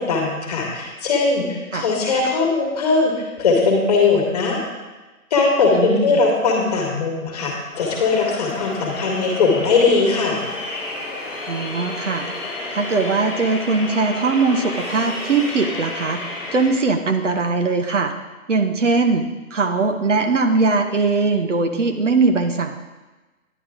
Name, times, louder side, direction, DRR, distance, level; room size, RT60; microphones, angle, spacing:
voice 1, 0.1-4.6 5.3-10.4, left 4 dB, 25° left, 0 dB, 1.7 m, -19 dB
voice 2, 5.7-6.2 11.5-12.3 12.7-16.2 16.5-18.1 18.5-19.2 19.5-22.8, right 4 dB, 55° right, 6 dB, 0.9 m, -20 dB
sound 1, 7.7-16.7, left 2 dB, 5° left, 1.2 m, -31 dB
10.0 x 9.5 x 3.7 m, 1.2 s
figure-of-eight pair, 155°, 45 cm